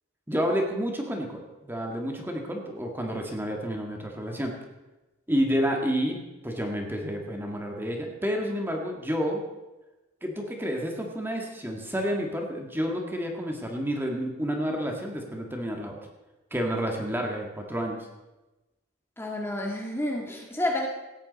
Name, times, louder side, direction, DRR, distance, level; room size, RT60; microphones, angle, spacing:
voice 1, 0.3-4.6 5.3-6.2 6.4-9.4 10.2-16.0 16.5-18.1, equal, 10° right, 1 dB, 1.8 m, -30 dB
voice 2, 19.2-20.9, left 1 dB, 10° left, 1 dB, 1.7 m, -30 dB
17.5 x 13.5 x 4.1 m, 1.1 s
head